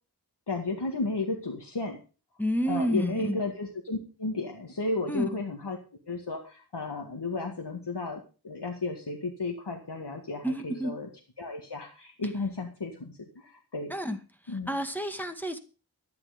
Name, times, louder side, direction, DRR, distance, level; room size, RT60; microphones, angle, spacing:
voice 1, 0.5-2.0 2.7-5.8 6.1-11.1 11.4-14.2 14.5-14.7, left 3 dB, 85° left, 2 dB, 2.1 m, -33 dB
voice 2, 2.4-3.4 5.1-5.4 10.4-10.9 13.9-14.2 14.4-15.6, equal, 5° left, 6 dB, 2.0 m, -30 dB
13.0 x 10.5 x 5.2 m, 0.35 s
wide cardioid pair, 50°, 40 cm